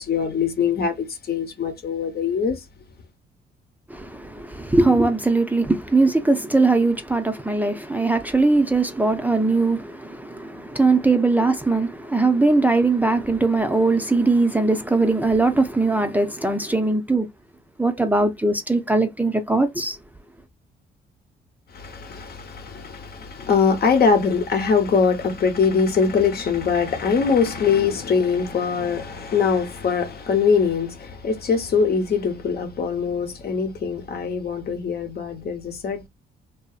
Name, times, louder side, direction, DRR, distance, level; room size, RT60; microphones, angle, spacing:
voice 1, 0.0-2.6 21.7-36.1, left 5 dB, 50° left, 1.0 m, -22 dB
voice 2, 3.9-17.3 17.8-20.0, right 3 dB, 10° right, 0.6 m, -20 dB
2.7 x 2.6 x 2.4 m
cardioid pair, 90°, 20 cm